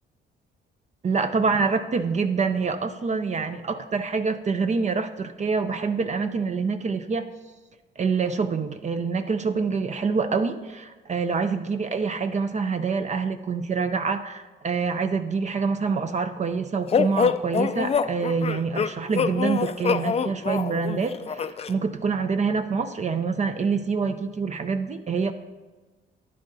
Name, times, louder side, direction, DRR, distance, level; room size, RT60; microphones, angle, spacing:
voice 1, 1.0-7.2 8.0-25.3, right 5 dB, 35° right, 8 dB, 0.6 m, -26 dB
sound 1, 16.9-21.7, left 6 dB, 30° left, 0.4 m, -25 dB
12.0 x 9.9 x 2.7 m, 1.3 s
cardioid pair, 90°, 20 cm